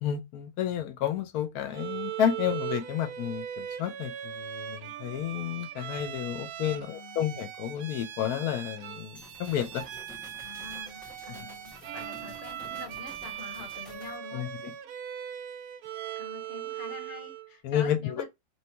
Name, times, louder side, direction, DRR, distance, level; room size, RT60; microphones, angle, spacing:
voice 1, 0.0-9.8 14.3-14.5 17.6-18.3, left 10 dB, 85° left, 1.1 m, -31 dB
Bowed string instrument, 1.7-17.5, right 11 dB, 80° right, 1.1 m, -39 dB
voice 2, 6.7-7.2 10.4-14.5 16.2-18.3, left 4 dB, 55° left, 1.3 m, -45 dB
sound 1, 9.1-14.2, left 2 dB, ahead, 1.1 m, -51 dB
3.1 x 2.8 x 4.4 m
omnidirectional pair, 1.6 m